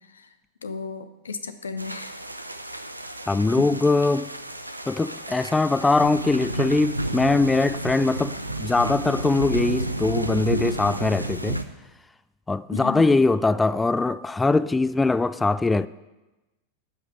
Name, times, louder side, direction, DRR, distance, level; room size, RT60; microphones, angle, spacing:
voice 1, 0.6-2.2 3.6-3.8 12.7-13.2, left 5 dB, 70° left, 0.8 m, -34 dB
sound 1, 1.8-11.6, right 1 dB, 85° right, 0.6 m, -31 dB
voice 2, 3.3-4.3 4.9-11.6 12.5-15.9, left 3 dB, 10° left, 0.3 m, -22 dB
12.5 x 5.8 x 8.0 m
figure-of-eight pair, 90°, 0 cm